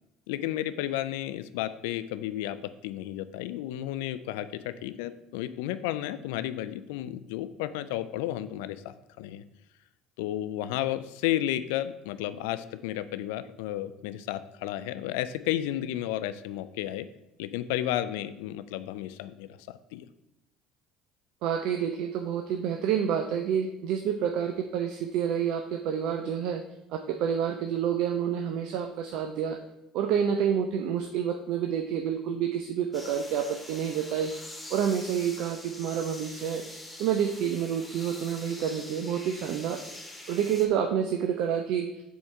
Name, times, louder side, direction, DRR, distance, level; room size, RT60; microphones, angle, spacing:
voice 1, 0.3-9.4 10.2-17.1 17.4-20.1, left 13 dB, 80° left, 13 dB, 0.3 m, -32 dB
voice 2, 21.4-26.6 26.9-29.6 29.9-34.3 34.7-36.6 37.0-39.8 40.3-41.9, right 8 dB, 70° right, 6 dB, 0.5 m, -28 dB
sound 1, 32.9-40.7, left 1 dB, 10° left, 1.7 m, -44 dB
7.1 x 3.7 x 4.4 m, 0.92 s
hypercardioid pair, 75°, 0 cm